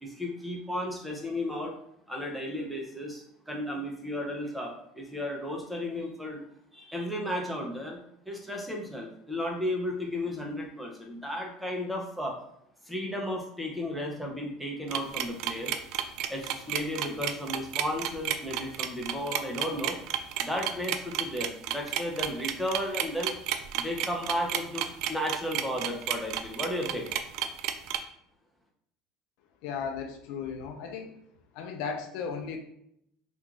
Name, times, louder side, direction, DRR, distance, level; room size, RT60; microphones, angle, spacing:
voice 1, 0.0-1.7 2.1-6.4 6.7-12.4 12.8-15.8 16.3-20.0 20.4-23.4 23.8-27.1, left 1 dB, ahead, 0 dB, 0.7 m, -34 dB
sound 1, 14.9-28.0, right 10 dB, 60° right, 0.3 m, -31 dB
voice 2, 29.6-31.1 31.5-32.6, left 6 dB, 70° left, 4 dB, 0.5 m, -35 dB
3.0 x 2.5 x 3.6 m, 0.73 s
supercardioid pair, 130°, 0 cm